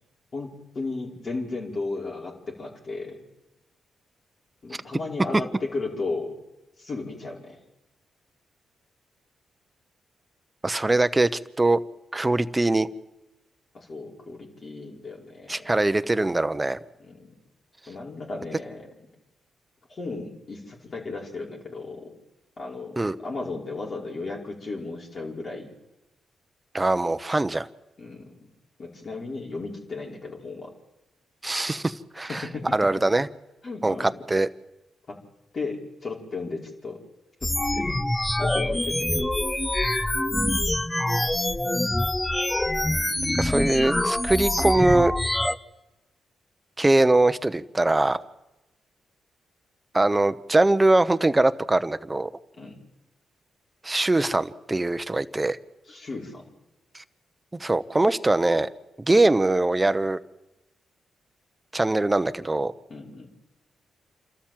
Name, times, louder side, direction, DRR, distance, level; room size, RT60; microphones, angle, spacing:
voice 1, 0.3-3.3 4.6-6.4 6.8-7.6 13.7-15.7 17.0-17.3 17.9-18.9 19.9-22.1 22.6-25.7 28.0-28.3 28.8-30.7 32.3-32.8 33.6-34.1 35.1-35.2 35.5-37.0 37.4-38.0 38.4-39.3 42.9-43.2 52.6-52.8 55.9-56.4 62.9-63.3, left 3 dB, 50° left, -1 dB, 5.1 m, -35 dB
voice 2, 10.6-11.8 12.1-12.9 15.5-16.8 23.0-23.2 26.7-27.7 31.4-32.4 32.7-33.3 33.8-34.5 43.4-45.1 46.8-48.2 49.9-52.3 53.8-55.6 56.9-57.0 57.6-58.7 59.1-60.2 61.7-62.7, right 2 dB, 20° right, 12 dB, 1.0 m, -22 dB
sound 1, 37.4-45.5, left 1 dB, 15° left, 0.9 m, -25 dB
28.0 x 13.0 x 7.6 m, 0.99 s
hypercardioid pair, 45°, 0 cm